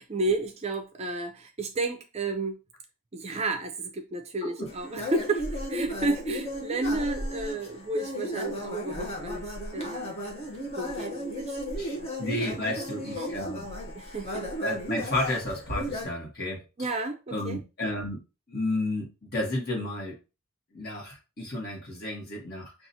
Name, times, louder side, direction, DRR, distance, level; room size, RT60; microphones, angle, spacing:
voice 1, 0.0-2.6 3.1-10.1 10.8-12.1 12.8-12.9 13.2-13.3 13.9-14.5 16.8-17.6, right 2 dB, 30° right, 0.4 m, -32 dB
voice 2, 4.4-4.7 11.8-13.7 14.6-16.9 17.3-18.2 18.5-20.2 20.7-22.7, left 1 dB, 45° left, 1.3 m, -32 dB
sound 1, 4.7-16.0, equal, 30° left, 0.8 m, -35 dB
5.8 x 2.4 x 2.7 m
head